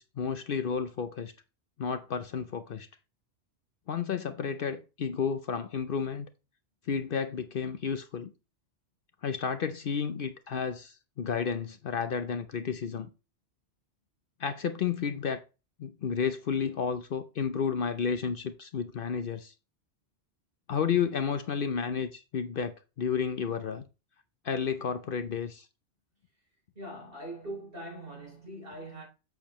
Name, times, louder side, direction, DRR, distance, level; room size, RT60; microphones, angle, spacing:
voice 1, 0.0-1.3 1.8-2.9 3.9-6.3 6.9-8.3 9.2-13.1 14.4-15.4 15.8-19.5 20.7-23.9 24.4-25.7, left 6 dB, 55° left, 0.8 m, -31 dB
voice 2, 26.8-29.0, right 1 dB, 55° right, 3.5 m, -42 dB
8.0 x 6.6 x 3.0 m
omnidirectional pair, 1.2 m